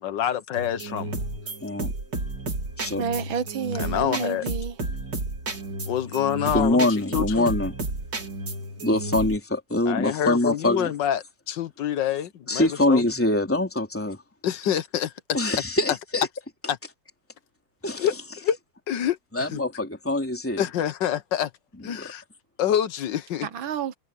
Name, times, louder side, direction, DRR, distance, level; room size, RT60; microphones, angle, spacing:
voice 1, 0.0-1.2 3.8-4.5 5.9-7.5 9.9-13.0 14.4-15.1 16.7-16.8 18.0-18.6 18.9-19.6 20.6-21.5 21.8-22.2 22.6-23.5, left 10 dB, 70° left, 1.6 m, -27 dB
sound 1, 0.5-9.4, right 2 dB, 60° right, 3.7 m, -32 dB
voice 2, 1.6-1.9 2.8-3.0 6.5-7.7 8.8-10.9 12.5-14.2 15.3-16.3 17.8-18.1 19.3-20.6 22.0-22.1, left 1 dB, 5° left, 3.4 m, -24 dB
voice 3, 3.0-4.8 23.4-23.9, right 7 dB, 90° right, 2.0 m, -30 dB
omnidirectional pair, 2.1 m